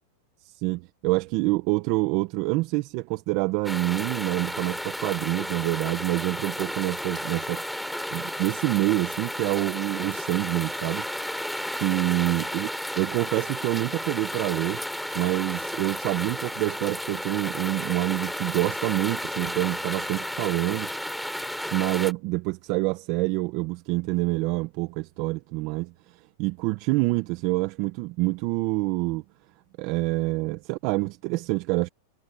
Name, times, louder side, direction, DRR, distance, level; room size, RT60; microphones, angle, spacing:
voice 1, 0.4-7.6 8.1-11.4 11.7-12.7 12.9-14.8 15.1-20.9 21.7-29.2 29.8-31.9, right 22 dB, 45° right, 1.1 m, -27 dB
sound 1, 3.6-22.1, equal, ahead, 4.0 m, -33 dB
supercardioid pair, 140°, 0 cm